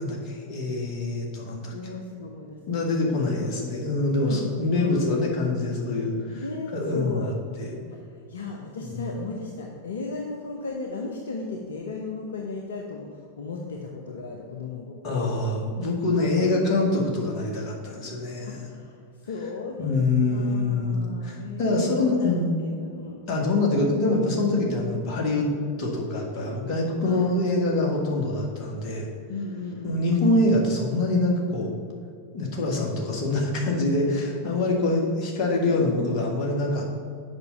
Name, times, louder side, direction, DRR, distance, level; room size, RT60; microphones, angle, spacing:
voice 1, 0.0-1.7 2.7-6.4 6.7-7.3 7.6-7.8 9.0-9.1 15.0-18.6 19.8-22.5 23.3-25.5 25.8-29.1 29.8-31.7 32.3-36.9, left 2 dB, 40° left, -1 dB, 1.9 m, -25 dB
voice 2, 1.7-2.9 3.4-3.5 4.2-5.0 6.3-7.3 7.9-15.4 16.2-16.5 18.5-19.9 20.3-23.3 24.5-24.7 27.0-27.3 29.3-30.0 35.8-36.2, left 3 dB, 65° left, 1 dB, 0.7 m, -35 dB
8.1 x 5.2 x 5.5 m, 2.3 s
figure-of-eight pair, 90°, 0 cm